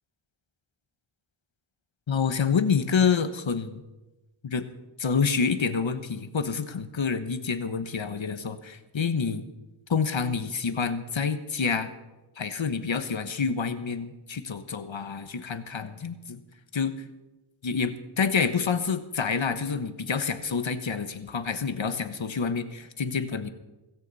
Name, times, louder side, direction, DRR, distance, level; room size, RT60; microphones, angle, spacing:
voice 1, 2.1-3.8 4.4-4.6 5.0-9.4 9.9-11.9 12.4-16.4 16.7-16.9 17.6-23.5, left 5 dB, 70° left, 10 dB, 1.2 m, -28 dB
16.5 x 16.5 x 4.2 m, 1.1 s
wide cardioid pair, 75°, 48 cm